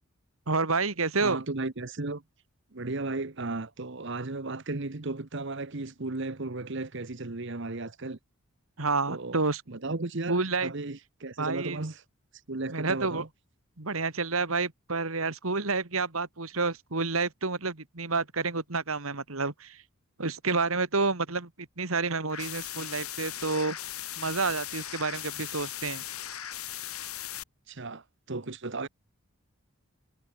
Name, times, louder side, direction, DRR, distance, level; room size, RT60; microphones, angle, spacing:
voice 1, 0.5-1.4 8.8-9.6 10.3-10.7 11.4-11.8 12.7-13.2 13.8-19.8 20.2-23.8 24.2-26.0, right 3 dB, 75° right, 2.2 m, -29 dB
voice 2, 1.2-2.2 2.7-8.2 9.1-9.4 9.7-12.0 12.5-13.3 27.7-28.9, right 2 dB, 55° right, 1.2 m, -35 dB
sound 1, 22.3-27.4, left 12 dB, 90° left, 4.5 m, -38 dB
head